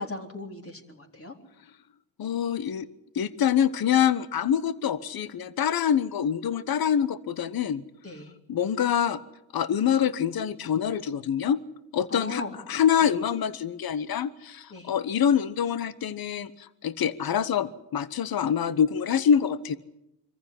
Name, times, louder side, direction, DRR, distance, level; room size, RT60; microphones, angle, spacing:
voice 1, 0.0-1.3 8.0-8.3 12.1-12.6 14.7-14.9, left 3 dB, 35° left, 3 dB, 3.9 m, -37 dB
voice 2, 2.2-2.8 3.1-7.8 8.5-9.2 9.5-11.6 11.9-19.8, left 8 dB, 60° left, 16 dB, 1.3 m, -25 dB
25.0 x 14.5 x 9.9 m, 0.85 s
supercardioid pair, 65°, 41 cm